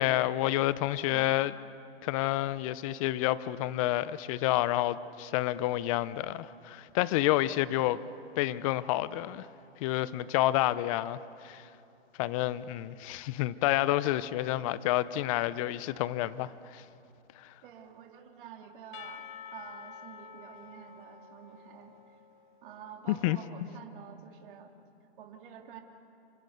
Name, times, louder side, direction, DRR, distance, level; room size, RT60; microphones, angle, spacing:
voice 1, 0.0-1.5 2.0-8.0 8.4-9.5 9.8-11.7 12.2-16.8 17.4-17.5 23.1-23.4, left 15 dB, 30° left, 17 dB, 0.7 m, -29 dB
voice 2, 1.1-1.5 17.6-19.2 19.5-22.2 22.6-24.7 25.2-25.8, right 8 dB, 50° right, 3 dB, 2.7 m, -49 dB
Percussion / Church bell, 18.9-22.8, left 7 dB, 50° left, 1.6 m, -49 dB
27.5 x 25.5 x 6.7 m, 2.7 s
hypercardioid pair, 140°, 32 cm